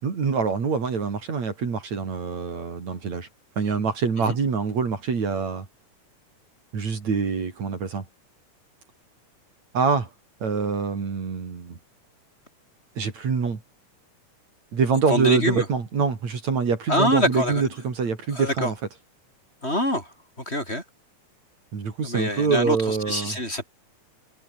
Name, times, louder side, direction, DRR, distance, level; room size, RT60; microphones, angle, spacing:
voice 1, 0.0-3.3 3.6-5.7 6.7-8.0 9.7-10.1 10.4-11.8 13.0-13.6 14.7-18.7 21.7-23.4, right 5 dB, 60° right, 4.9 m, -25 dB
voice 2, 15.1-15.7 16.9-17.7 18.3-18.7 19.6-20.1 20.5-20.8 22.0-23.7, left 1 dB, 20° left, 7.7 m, -25 dB
omnidirectional pair, 3.6 m